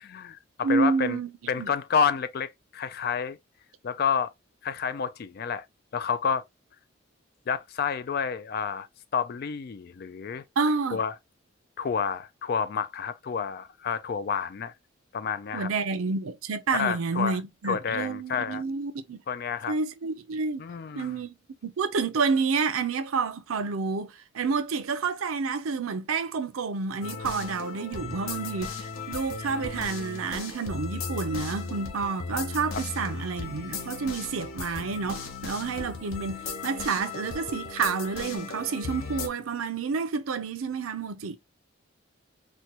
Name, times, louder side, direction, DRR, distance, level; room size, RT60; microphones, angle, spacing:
voice 1, 0.0-1.2 1.5-3.4 3.8-4.3 4.6-5.6 5.9-6.4 7.5-8.9 9.1-10.4 10.9-11.1 11.8-14.7 15.1-15.7 16.7-17.4 17.6-18.6 19.3-19.8 20.6-21.2 32.7-32.8, left 6 dB, 50° left, 0.3 m, -29 dB
voice 2, 0.6-1.3 1.6-1.7 10.6-11.0 15.5-19.2 19.7-20.6 21.0-21.3 21.6-41.4, right 4 dB, 90° right, 0.5 m, -29 dB
sound 1, 27.0-39.3, left 4 dB, 85° left, 0.8 m, -36 dB
4.3 x 2.2 x 2.8 m
head